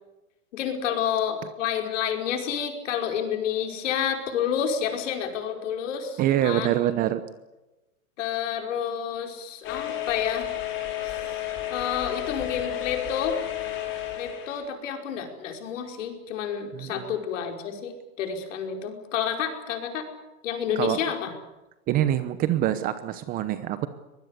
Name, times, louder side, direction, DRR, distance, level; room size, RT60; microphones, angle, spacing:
voice 1, 0.5-6.7 8.2-10.5 11.0-11.4 11.7-13.4 14.2-20.1 20.4-21.3, left 8 dB, 55° left, 4 dB, 5.2 m, -29 dB
voice 2, 5.6-7.2 16.7-17.0 20.8-21.0 21.9-23.9, right 12 dB, 20° right, 13 dB, 0.9 m, -25 dB
sound 1, 9.6-14.7, left 13 dB, 25° left, 4.9 m, -32 dB
23.5 x 20.5 x 8.3 m, 1.0 s
hypercardioid pair, 145°, 44 cm